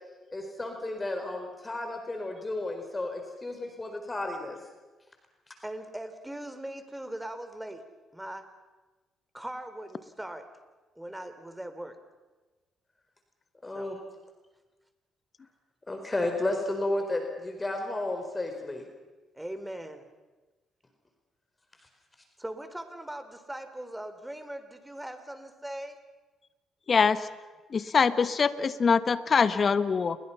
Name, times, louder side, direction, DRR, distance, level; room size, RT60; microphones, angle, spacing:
voice 1, 0.3-4.6 13.6-14.0 15.9-18.8, left 2 dB, 25° left, 4 dB, 4.5 m, -32 dB
voice 2, 5.6-7.8 8.1-8.4 9.3-10.5 11.0-12.0 13.7-13.9 19.3-20.1 22.4-26.0, right 1 dB, 10° right, 9 dB, 3.7 m, -40 dB
voice 3, 26.9-27.3 27.7-30.2, left 5 dB, 45° left, 13 dB, 1.5 m, -24 dB
29.0 x 22.5 x 5.8 m, 1.2 s
hypercardioid pair, 50°, 0 cm